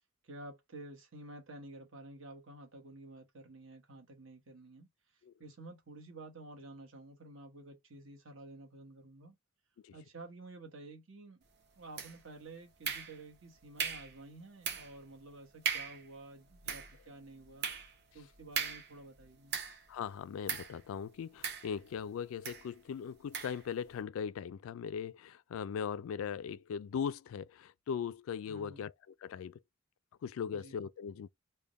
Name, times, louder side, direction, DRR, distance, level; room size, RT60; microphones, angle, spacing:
voice 1, 0.2-9.4 9.9-11.4 11.8-17.7 18.1-19.6 28.4-28.9 30.5-30.7, right 2 dB, 70° right, 1.1 m, -51 dB
sound 1, 12.0-12.4 12.8-13.4 13.8-14.2 14.6-15.0 15.3-15.4 15.6-16.1 16.5-19.9 20.5-20.8 21.4-22.0 22.4-22.7 23.3-23.6, right 6 dB, 50° right, 0.9 m, -38 dB
voice 2, 19.9-28.9 29.2-29.6 30.2-31.3, left 7 dB, 80° left, 0.3 m, -39 dB
3.5 x 2.2 x 3.8 m
head